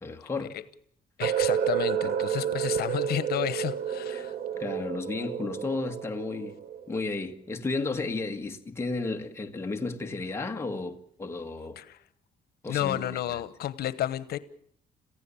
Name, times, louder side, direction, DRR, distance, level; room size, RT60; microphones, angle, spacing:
voice 1, 0.0-0.5 4.1-4.2 4.5-6.5 6.9-11.8 12.6-13.2, left 3 dB, 15° left, 1.6 m, -33 dB
voice 2, 1.2-4.4 11.8-12.0 12.7-14.4, left 12 dB, 80° left, 1.1 m, -31 dB
sound 1, 1.2-7.1, right 9 dB, 75° right, 1.6 m, -30 dB
27.5 x 15.5 x 7.0 m
cardioid pair, 160°, 16 cm